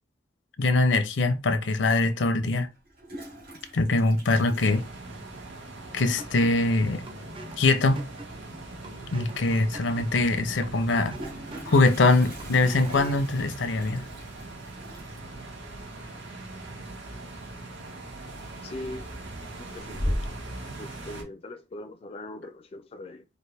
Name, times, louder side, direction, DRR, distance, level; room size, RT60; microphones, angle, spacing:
voice 1, 0.6-2.7 3.7-4.8 5.9-7.0 7.6-8.0 9.1-11.2 11.7-14.1, left 2 dB, 80° left, 0.6 m, -23 dB
Toilet flush, 2.7-5.6 5.8-5.9 6.2-6.3 6.6-7.0 8.7-8.8 9.1-9.2 10.8-17.5 17.8-18.2 18.6-19.2 19.6-20.6, equal, 55° right, 1.7 m, -39 dB
sound 1, 4.5-21.2, right 2 dB, 85° right, 1.6 m, -41 dB
sound 2, 6.2-13.3, right 1 dB, 30° right, 0.5 m, -46 dB
voice 2, 18.6-19.1 19.6-20.2 20.8-23.2, left 2 dB, 30° left, 0.4 m, -40 dB
4.4 x 2.5 x 3.4 m
head